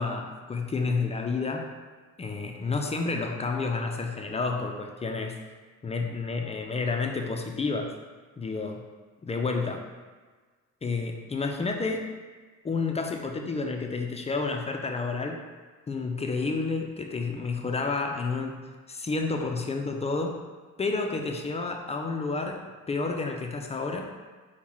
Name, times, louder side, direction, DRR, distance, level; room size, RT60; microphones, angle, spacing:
voice 1, 0.0-1.7 2.2-5.4 5.8-7.9 8.4-8.8 9.2-9.9 10.8-12.0 12.6-15.4 15.9-20.4 20.8-24.1, left 4 dB, 20° left, 3 dB, 0.3 m, -30 dB
5.3 x 2.2 x 3.0 m, 1.4 s
cardioid pair, 90°, 30 cm